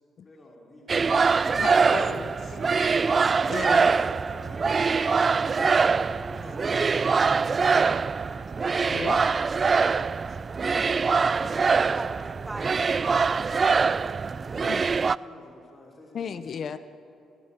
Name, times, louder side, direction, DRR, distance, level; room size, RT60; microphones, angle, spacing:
voice 1, 0.2-0.9 1.4-3.4 4.0-5.3 5.8-7.3 15.2-16.8, left 2 dB, 30° left, -2 dB, 5.4 m, -46 dB
sound 1, 0.9-15.2, right 5 dB, 40° right, 0.4 m, -23 dB
voice 2, 1.6-2.3 3.5-3.9 5.9-6.0 8.0-9.3 10.8-11.5 14.5-15.0 16.1-16.8, left 7 dB, 55° left, 13 dB, 0.9 m, -37 dB
voice 3, 9.0-13.0, right 2 dB, 20° right, 4 dB, 3.2 m, -43 dB
30.0 x 18.0 x 7.5 m, 2.7 s
hypercardioid pair, 55°, 0 cm